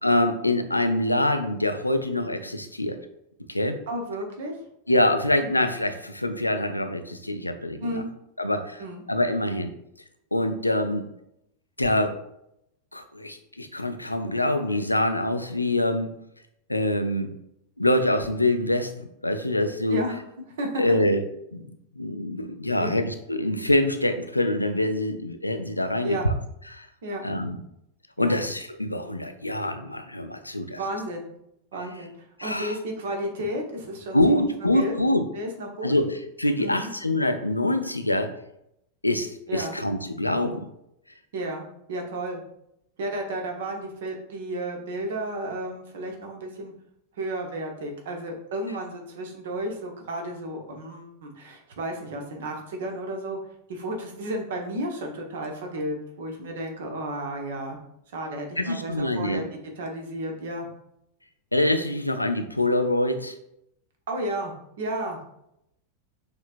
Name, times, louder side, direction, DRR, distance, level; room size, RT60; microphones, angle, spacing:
voice 1, 0.0-3.0 3.5-3.8 4.9-8.0 8.4-8.8 9.1-9.7 10.3-11.1 11.8-12.2 12.9-16.1 16.7-17.3 17.8-18.9 19.2-20.0 20.8-21.2 21.5-21.7 22.0-26.3 26.7-26.9 27.2-27.6 28.2-30.8 32.4-32.8 34.1-35.2 35.8-38.3 39.0-40.7 58.6-59.4 61.5-63.4, left 1 dB, 85° left, 7 dB, 0.4 m, -25 dB
voice 2, 3.9-4.6 5.4-5.5 7.8-8.1 8.8-9.0 19.9-20.2 20.6-21.0 22.7-22.9 26.0-26.3 27.0-27.2 28.2-28.4 30.8-31.2 31.7-34.4 34.7-34.9 35.3-35.9 36.6-36.9 39.5-39.8 41.3-42.4 43.0-46.7 47.2-53.4 53.7-57.8 58.1-59.4 59.8-60.7 64.1-65.3, right 1 dB, 60° right, 2 dB, 0.9 m, -32 dB
6.1 x 2.9 x 2.5 m, 0.79 s
figure-of-eight pair, 90°, 0 cm